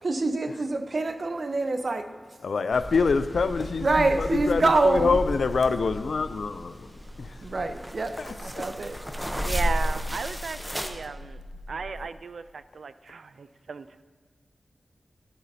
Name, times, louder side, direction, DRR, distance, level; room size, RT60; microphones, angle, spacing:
voice 1, 0.0-2.1 3.8-5.3 7.4-9.0, right 3 dB, 60° right, 8 dB, 0.7 m, -26 dB
voice 2, 2.4-6.9 7.2-7.5 8.2-8.3, left 4 dB, 85° left, 12 dB, 0.4 m, -26 dB
sound 1, 2.7-10.9, equal, 10° right, 0.8 m, -33 dB
sound 2, 7.1-12.0, left 1 dB, 25° right, 1.6 m, -49 dB
voice 3, 9.4-11.4 11.7-14.0, right 5 dB, 85° right, 13 dB, 0.3 m, -35 dB
11.5 x 10.5 x 2.8 m, 1.5 s
wide cardioid pair, 65°, 0 cm